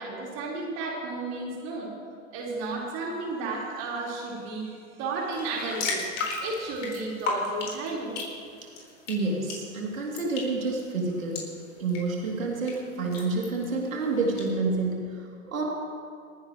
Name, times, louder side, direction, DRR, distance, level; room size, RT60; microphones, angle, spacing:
voice 1, 0.0-1.9 2.3-4.7 5.0-8.1, right 3 dB, 40° right, -4 dB, 4.5 m, -33 dB
sound 1, 5.3-14.5, left 3 dB, 60° left, 4.5 m, -37 dB
voice 2, 9.1-11.4 11.8-15.6, right 3 dB, 80° right, -2 dB, 3.0 m, -29 dB
28.5 x 10.0 x 3.2 m, 2.3 s
hypercardioid pair, 110°, 40 cm